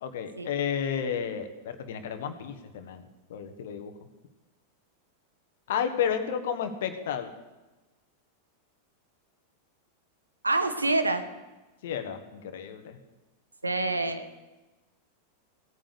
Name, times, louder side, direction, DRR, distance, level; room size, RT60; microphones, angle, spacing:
voice 1, 0.0-3.0 3.3-3.9 5.7-7.3 11.8-13.0, left 8 dB, 55° left, 8 dB, 1.4 m, -32 dB
voice 2, 10.4-11.2 13.6-14.2, right 2 dB, 80° right, 9 dB, 1.2 m, -26 dB
16.5 x 9.1 x 6.9 m, 1.1 s
figure-of-eight pair, 90°, 0 cm